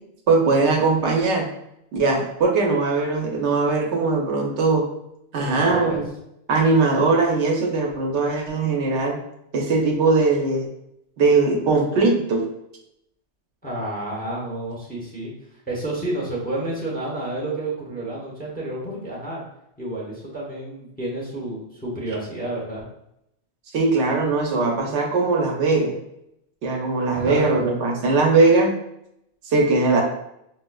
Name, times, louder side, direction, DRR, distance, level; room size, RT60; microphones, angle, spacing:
voice 1, 0.3-1.5 1.9-4.8 5.3-6.1 6.5-9.2 9.5-10.7 11.2-12.5 23.7-26.0 26.6-28.7 29.4-30.0, right 3 dB, 75° right, 1 dB, 0.9 m, -20 dB
voice 2, 5.4-6.0 13.6-15.3 15.7-19.4 19.8-22.8 27.1-27.7, right 1 dB, 10° left, -5 dB, 0.7 m, -30 dB
4.7 x 2.0 x 2.2 m, 0.79 s
omnidirectional pair, 1.2 m